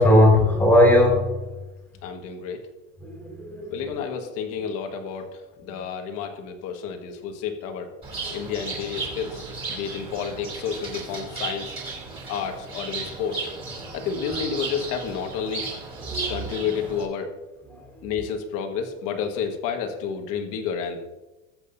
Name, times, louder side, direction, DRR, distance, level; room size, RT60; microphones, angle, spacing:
voice 1, 0.0-1.4 3.0-4.0 8.2-8.3 12.1-12.2 13.8-13.9 16.0-16.6 17.7-18.1, left 1 dB, 5° left, 0 dB, 2.7 m, -20 dB
voice 2, 2.0-2.6 3.7-7.9 8.3-9.4 9.7-11.8 12.3-13.5 13.9-15.7 16.3-17.3 18.0-21.0, left 6 dB, 40° left, 4 dB, 1.6 m, -30 dB
Bird, 8.0-17.0, right 3 dB, 15° right, 3.2 m, -35 dB
21.0 x 8.0 x 2.7 m, 1.1 s
supercardioid pair, 170°, 39 cm